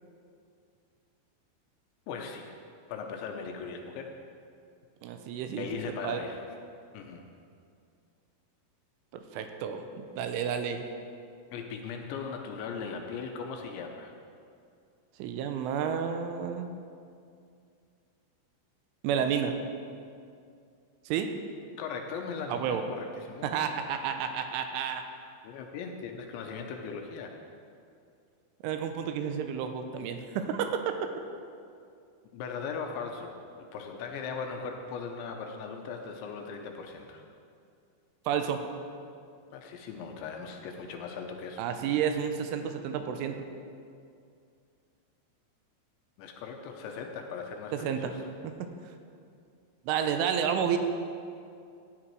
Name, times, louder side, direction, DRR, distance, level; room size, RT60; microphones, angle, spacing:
voice 1, 2.1-2.5 2.9-4.1 5.6-6.4 6.9-7.2 11.5-14.1 21.8-23.6 25.4-27.4 32.3-37.2 39.5-41.7 46.2-48.3, left 5 dB, 80° left, 3 dB, 2.9 m, -39 dB
voice 2, 5.0-5.7 6.0-6.2 9.1-10.8 15.2-16.7 19.0-19.5 21.1-21.3 22.5-22.8 23.4-25.0 28.6-30.9 38.3-38.6 41.6-43.5 47.7-48.1 48.4-48.5 49.9-50.8, right 8 dB, 85° right, 7 dB, 3.2 m, -31 dB
15.0 x 10.0 x 4.7 m, 2.4 s
omnidirectional pair, 5.7 m